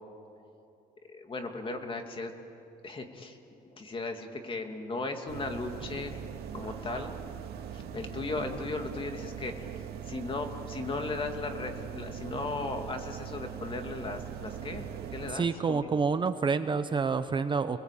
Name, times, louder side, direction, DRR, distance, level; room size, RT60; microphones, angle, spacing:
voice 1, 1.1-2.3 2.8-3.4 3.6-6.2 6.5-7.1 7.7-9.7 10.0-16.0, left 3 dB, 30° left, 4 dB, 2.7 m, -37 dB
sound 1, 5.3-15.3, right 8 dB, 70° right, 2.4 m, -41 dB
voice 2, 15.3-17.8, right 5 dB, 30° right, 10 dB, 0.9 m, -28 dB
30.0 x 21.0 x 8.6 m, 2.7 s
cardioid pair, 110°, 17 cm